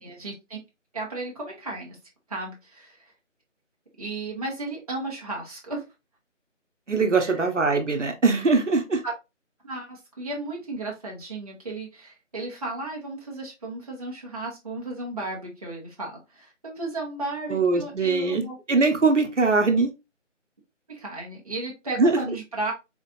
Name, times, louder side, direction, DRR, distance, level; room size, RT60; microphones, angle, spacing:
voice 1, 0.0-0.6 0.9-2.0 2.3-3.0 4.0-5.8 7.1-7.3 9.0-9.1 9.6-18.6 20.9-22.7, right 2 dB, 30° right, 1.0 m, -34 dB
voice 2, 6.9-9.0 17.5-19.9 22.0-22.1, right 3 dB, 70° right, 1.1 m, -22 dB
4.0 x 3.2 x 2.5 m
figure-of-eight pair, 160°, 38 cm